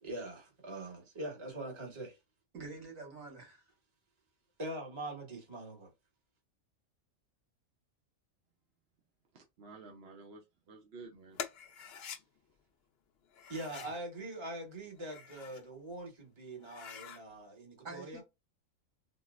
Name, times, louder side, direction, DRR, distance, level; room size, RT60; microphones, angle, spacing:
voice 1, 0.0-2.2 4.6-5.9 13.5-18.2, right 1 dB, 25° right, 1.1 m, -43 dB
voice 2, 2.5-3.6 13.7-14.0 17.8-18.2, right 3 dB, 75° right, 2.0 m, -47 dB
voice 3, 9.3-11.7, right 3 dB, 60° right, 0.8 m, -52 dB
sound 1, 11.3-12.2 13.3-14.0 14.9-15.7 16.1-16.2 16.6-17.2, left 7 dB, 60° left, 0.7 m, -46 dB
4.0 x 2.0 x 2.3 m
omnidirectional pair, 1.4 m